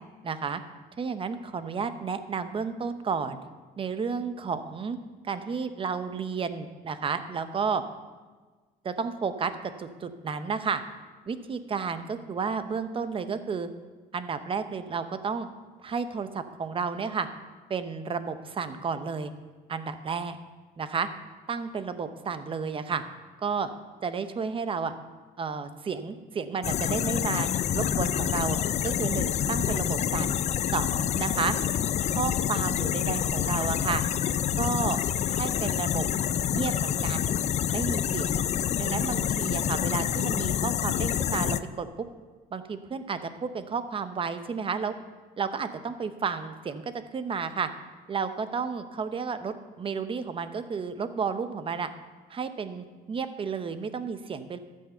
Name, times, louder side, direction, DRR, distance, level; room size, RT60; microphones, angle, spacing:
voice 1, 0.2-0.6 1.0-3.4 3.8-5.0 5.2-7.8 8.8-10.8 11.3-13.7 14.1-15.5 15.8-17.3 17.7-19.3 19.7-20.4 20.8-21.1 21.5-23.0 23.4-23.7 24.0-24.9 25.4-27.5 27.7-28.6 28.8-30.3 30.7-31.6 32.0-34.0 34.5-35.0 35.3-36.1 36.5-37.3 37.7-38.4 38.8-42.1 42.5-45.0 45.4-46.8 47.1-47.7 48.1-51.9 52.3-54.6, right 5 dB, 30° right, 10 dB, 0.8 m, -32 dB
sound 1, 26.6-41.6, left 9 dB, 40° left, 0.4 m, -27 dB
13.0 x 6.4 x 5.6 m, 1.4 s
cardioid pair, 110°, 17 cm